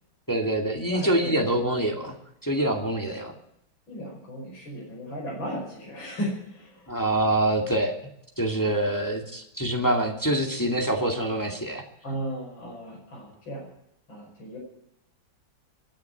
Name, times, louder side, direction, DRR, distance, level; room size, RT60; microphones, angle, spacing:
voice 1, 0.3-2.1 2.4-3.3 6.9-7.9 8.4-11.8, right 1 dB, 10° left, 0 dB, 2.1 m, -25 dB
voice 2, 0.9-1.4 2.6-2.8 3.9-6.9 12.0-13.6 14.1-14.6, equal, 75° left, -2 dB, 5.8 m, -35 dB
24.5 x 10.5 x 4.7 m, 0.78 s
omnidirectional pair, 2.1 m